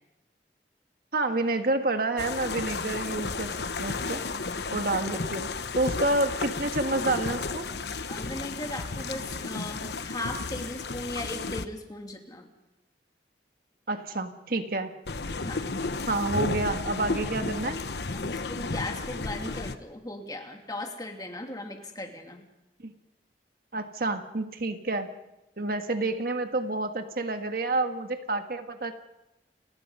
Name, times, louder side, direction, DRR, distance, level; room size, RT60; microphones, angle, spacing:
voice 1, 1.1-4.2 4.7-7.7 13.9-14.9 16.1-17.8 22.8-22.9 23.7-25.1 25.6-28.9, right 2 dB, 55° right, 7 dB, 1.6 m, -29 dB
sound 1, 2.2-11.7 15.1-19.8, left 3 dB, 70° left, 1.1 m, -33 dB
voice 2, 8.1-12.5 15.4-15.7 18.1-22.4, left 1 dB, 20° left, 3 dB, 2.6 m, -37 dB
30.0 x 19.5 x 5.6 m, 0.92 s
head